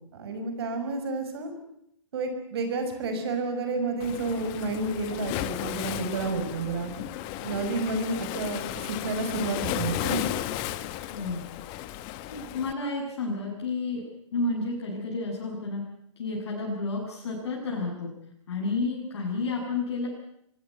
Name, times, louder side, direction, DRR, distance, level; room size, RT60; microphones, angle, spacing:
voice 1, 0.1-1.5 2.1-6.9 7.4-10.3, right 3 dB, 50° right, 7 dB, 6.0 m, -30 dB
Waves surf, 4.0-12.7, left 13 dB, 30° left, 1.5 m, -34 dB
voice 2, 11.1-11.5 12.3-14.0 14.3-15.8 16.2-18.1 18.5-20.1, left 3 dB, 55° left, -2 dB, 7.2 m, -31 dB
25.0 x 18.5 x 9.7 m, 0.75 s
figure-of-eight pair, 120°, 16 cm